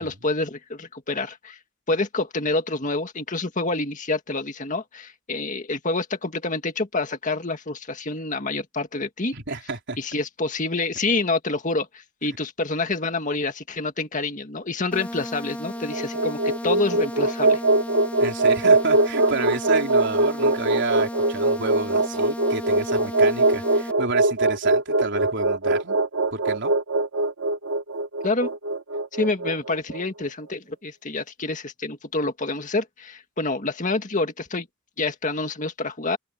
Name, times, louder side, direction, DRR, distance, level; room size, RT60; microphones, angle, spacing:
voice 1, 0.0-1.6 1.9-9.3 10.0-17.6 28.2-28.5 29.1-34.7 35.0-36.2, left 3 dB, 40° left, 1.9 m, -27 dB
voice 2, 9.3-10.0 18.2-26.0 26.3-26.7, right 3 dB, 55° right, 4.2 m, -30 dB
sound 1, 14.9-23.9, left 1 dB, 5° left, 1.9 m, -34 dB
sound 2, 15.8-30.1, right 2 dB, 90° right, 2.4 m, -22 dB
open air
head